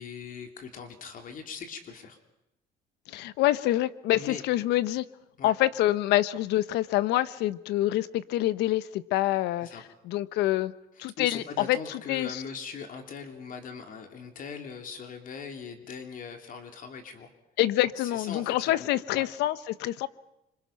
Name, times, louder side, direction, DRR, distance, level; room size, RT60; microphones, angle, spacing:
voice 1, 0.0-2.2 4.1-4.4 5.4-5.5 9.6-9.8 11.0-17.3 18.0-18.9 19.1-19.3, left 6 dB, 55° left, 5 dB, 3.2 m, -41 dB
voice 2, 3.1-5.0 5.4-10.7 11.0-12.4 17.6-20.1, left 15 dB, 85° left, 15 dB, 1.1 m, -26 dB
26.5 x 25.5 x 5.8 m, 0.87 s
cardioid pair, 110°, 17 cm